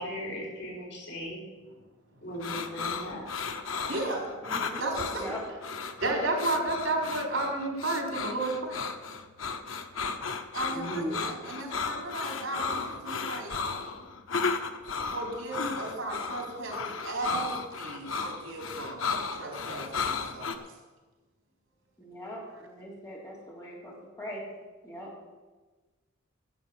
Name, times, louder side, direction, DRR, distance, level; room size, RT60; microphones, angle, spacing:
voice 1, 0.0-1.4 2.2-3.2 10.7-11.1, equal, 65° left, -4 dB, 5.0 m, -36 dB
sound 1, 2.4-20.6, left 4 dB, 90° left, 0.9 m, -34 dB
voice 2, 3.9-4.3 4.8-5.3 6.0-8.9 10.5-13.5 15.1-20.5, right 2 dB, 80° right, 0 dB, 3.8 m, -33 dB
voice 3, 4.4-4.8 5.1-5.4 22.0-24.4 24.8-25.1, equal, 15° left, -4 dB, 3.6 m, -41 dB
11.5 x 7.9 x 7.2 m, 1.3 s
head